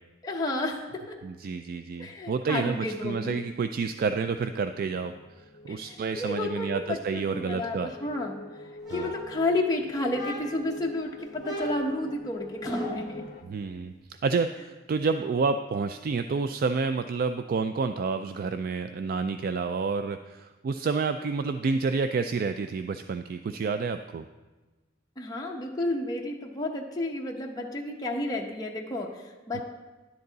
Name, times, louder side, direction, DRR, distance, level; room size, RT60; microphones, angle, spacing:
voice 1, 0.2-1.2 2.0-3.4 5.7-8.4 8.9-13.2 25.2-29.6, left 2 dB, 20° left, -1 dB, 0.8 m, -31 dB
voice 2, 1.2-5.1 5.7-7.9 8.9-9.1 13.4-13.9 14.2-24.2 29.5-29.6, right 4 dB, 50° right, 9 dB, 0.3 m, -29 dB
sound 1, 3.6-13.4, left 3 dB, 50° left, 0.9 m, -46 dB
sound 2, 8.8-9.7 10.1-10.7 11.4-13.2, equal, 20° right, 1.7 m, -36 dB
10.5 x 7.8 x 4.0 m, 1.2 s
head